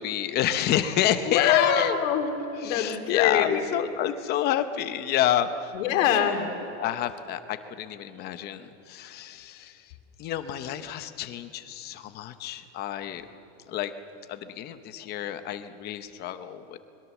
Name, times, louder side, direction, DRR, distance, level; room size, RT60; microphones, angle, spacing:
voice 1, 0.0-2.0 2.6-5.7 6.8-9.9 10.2-13.3 13.7-13.9 14.3-16.8, left 11 dB, 25° left, 10 dB, 0.8 m, -28 dB
voice 2, 1.3-2.3 2.6-3.6 5.7-6.5, left 9 dB, 65° left, 5 dB, 2.8 m, -24 dB
26.5 x 21.5 x 7.2 m, 3.0 s
supercardioid pair, 175°, 41 cm